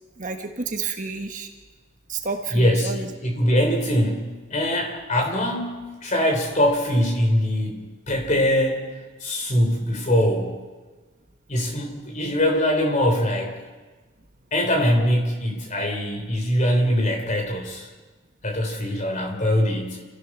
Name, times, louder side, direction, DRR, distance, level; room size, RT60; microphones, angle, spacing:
voice 1, 0.2-1.5 2.1-3.1, right 4 dB, 35° right, 4 dB, 1.3 m, -30 dB
voice 2, 2.5-8.9 9.2-10.6 11.5-13.6 14.5-17.9 18.4-20.0, equal, 35° left, 3 dB, 3.5 m, -22 dB
28.5 x 15.5 x 6.1 m, 1.3 s
head